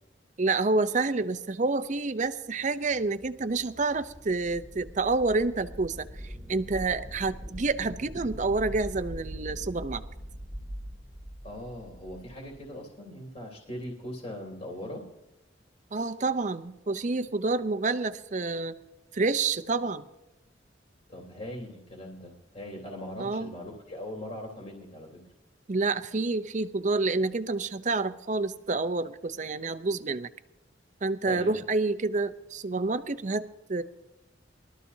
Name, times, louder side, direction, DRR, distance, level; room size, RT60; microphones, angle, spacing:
voice 1, 0.4-10.0 15.9-18.7 19.1-20.1 23.2-23.5 25.7-30.3 31.0-33.8, right 3 dB, 40° right, 12 dB, 0.6 m, -28 dB
sound 1, 2.5-12.7, equal, 10° right, 2.4 m, -42 dB
voice 2, 11.4-15.1 21.1-25.2 31.2-31.5, left 1 dB, 35° left, -2 dB, 2.9 m, -40 dB
22.0 x 13.0 x 2.7 m, 0.96 s
head